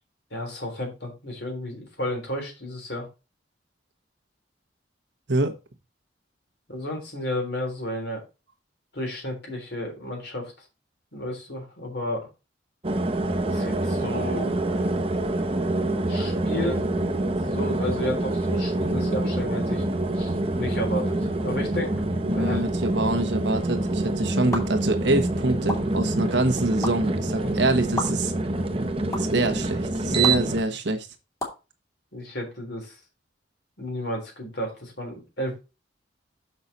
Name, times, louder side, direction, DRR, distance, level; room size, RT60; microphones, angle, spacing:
voice 1, 0.3-3.1 6.7-8.2 8.9-10.5 11.1-12.3 13.4-14.5 16.1-16.8 17.4-19.8 20.1-21.9 22.3-22.6 27.4-27.5 30.0-30.2 32.1-33.0 33.8-35.6, left 1 dB, 60° left, 1 dB, 3.5 m, -32 dB
sound 1, 12.8-30.6, right 2 dB, 30° right, 0.9 m, -26 dB
voice 2, 22.2-28.3 29.2-31.1, right 2 dB, 70° right, 6 dB, 1.3 m, -25 dB
sound 2, 24.5-24.6 25.7-25.8 26.8-26.9 28.0-28.1 29.1-29.2 30.2-30.3 31.4-31.6, left 1 dB, 15° left, 2.2 m, -28 dB
6.7 x 5.9 x 4.0 m, 0.28 s
head